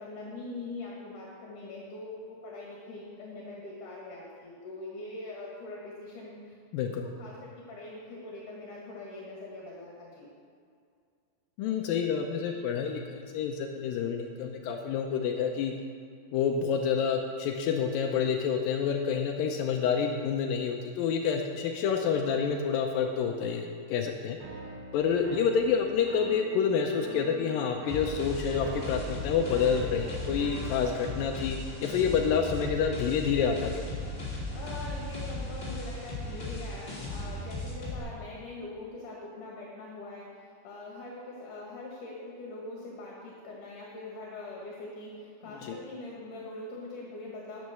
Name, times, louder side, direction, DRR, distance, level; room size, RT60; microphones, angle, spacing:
voice 1, 0.0-6.6 7.0-10.3 34.5-47.7, left 2 dB, 60° left, -4 dB, 3.2 m, -42 dB
voice 2, 6.7-7.1 11.6-15.7 16.3-24.4 24.9-33.8 45.6-45.7, left 6 dB, 80° left, 3 dB, 2.3 m, -28 dB
sound 1, 24.4-31.2, right 3 dB, 75° right, 3.3 m, -44 dB
sound 2, 27.9-38.0, left 1 dB, 25° left, 3.0 m, -37 dB
9.8 x 9.5 x 6.7 m, 2.3 s
omnidirectional pair, 4.3 m